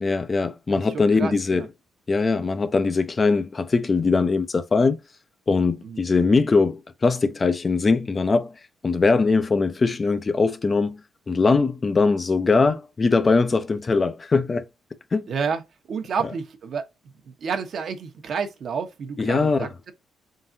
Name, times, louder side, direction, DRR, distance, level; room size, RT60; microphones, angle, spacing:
voice 1, 0.0-1.7 2.1-5.0 5.5-8.5 8.8-11.0 11.3-14.6 15.1-15.3 19.2-19.7, left 4 dB, 30° left, 0.5 m, -21 dB
voice 2, 0.7-1.7 5.8-6.0 12.7-12.8 15.3-15.6 15.9-16.9 17.3-19.9, right 6 dB, 60° right, 1.0 m, -30 dB
3.8 x 3.5 x 2.6 m
cardioid pair, 90°, 0 cm